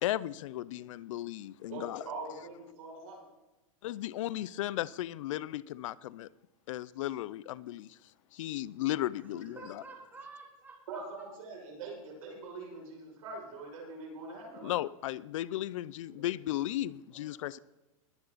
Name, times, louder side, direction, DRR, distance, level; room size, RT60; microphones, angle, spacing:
voice 1, 0.0-2.1 3.8-6.3 6.7-8.0 8.3-9.8 14.6-17.6, left 14 dB, 65° left, 0.5 m, -35 dB
voice 2, 1.7-3.3 9.3-9.4 10.9-14.7 16.1-16.3, right 3 dB, 75° right, 6.2 m, -43 dB
voice 3, 9.4-11.0 17.1-17.6, right 3 dB, 10° right, 3.1 m, -51 dB
20.5 x 9.8 x 4.0 m
supercardioid pair, 150°, 18 cm